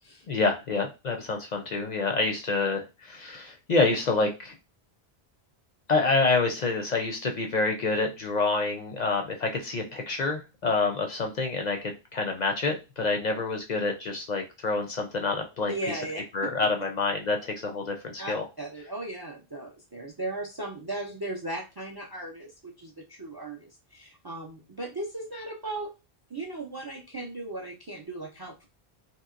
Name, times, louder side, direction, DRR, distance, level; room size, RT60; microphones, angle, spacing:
voice 1, 0.3-4.5 5.9-15.7 16.3-18.4, left 3 dB, 55° left, 3 dB, 0.5 m, -27 dB
voice 2, 15.7-16.2 18.2-25.9 26.3-28.6, right 2 dB, 35° right, 2 dB, 0.3 m, -37 dB
2.8 x 2.8 x 2.4 m, 0.27 s
omnidirectional pair, 1.0 m